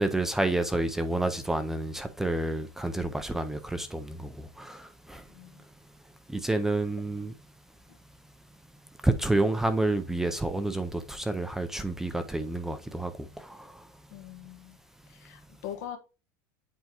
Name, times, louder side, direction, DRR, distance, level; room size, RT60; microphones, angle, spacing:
voice 1, 0.0-5.2 6.3-7.3 9.0-13.9, right 2 dB, 5° right, 0.4 m, -29 dB
voice 2, 5.3-5.6 7.9-8.0 14.1-14.8 15.1-16.0, left 10 dB, 80° left, 1.2 m, -42 dB
8.0 x 4.6 x 2.8 m
cardioid pair, 175°, 9 cm